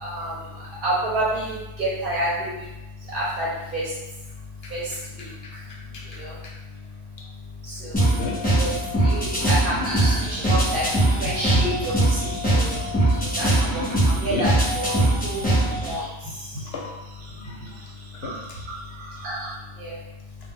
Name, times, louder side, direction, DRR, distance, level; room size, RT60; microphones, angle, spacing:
voice 1, 0.0-0.3 0.8-2.5 3.1-3.5 3.7-3.8 4.7-4.8 6.2-6.3 7.8-8.0 8.6-8.7 9.0-10.1 10.4-10.8 11.2-12.2 12.5-12.8 13.4-13.7 14.1-15.4 15.9-16.0 19.8-19.9, right 1 dB, 60° right, -6 dB, 0.7 m, -28 dB
voice 2, 5.9-6.5 8.0-8.4 12.4-12.5 14.3-14.5 16.5-16.9 17.4-17.8 18.1-18.3, left 3 dB, 65° left, -1 dB, 0.7 m, -33 dB
sound 1, 7.9-15.9, right 1 dB, 10° left, 0.4 m, -22 dB
sound 2, 9.8-19.6, right 1 dB, 90° right, 1.0 m, -37 dB
2.1 x 2.0 x 3.6 m, 1.0 s
omnidirectional pair, 1.2 m